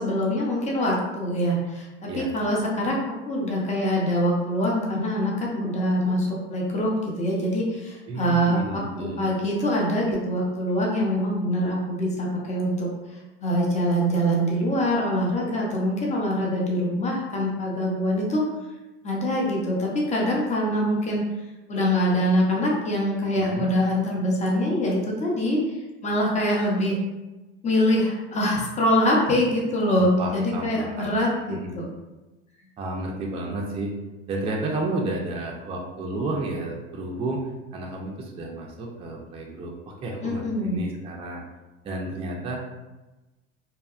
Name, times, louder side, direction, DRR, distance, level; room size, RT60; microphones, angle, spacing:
voice 1, 0.0-18.4 19.0-21.2 21.7-27.0 27.6-31.9 40.2-40.8, equal, 20° left, -2 dB, 0.7 m, -24 dB
voice 2, 8.1-9.3 23.3-23.7 29.9-31.2 31.5-31.7 32.8-33.9 34.3-41.4 41.8-42.6, right 2 dB, 15° right, -1 dB, 0.4 m, -32 dB
2.8 x 2.2 x 2.4 m, 1.1 s
supercardioid pair, 100°, 35 cm